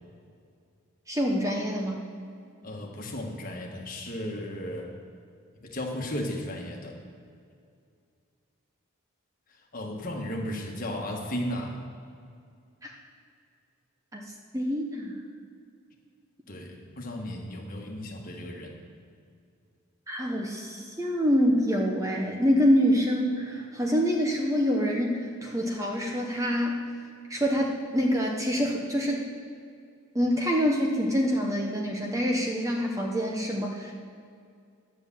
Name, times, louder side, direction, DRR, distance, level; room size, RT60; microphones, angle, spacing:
voice 1, 1.1-2.0 12.8-12.9 14.1-14.2 14.5-15.2 20.1-26.8 27.3-29.3 30.1-33.9, equal, 15° right, 0 dB, 0.9 m, -26 dB
voice 2, 2.6-4.9 5.6-7.0 9.7-11.8 16.5-18.7, left 1 dB, 40° left, 0 dB, 1.5 m, -35 dB
10.5 x 7.2 x 7.4 m, 2.3 s
head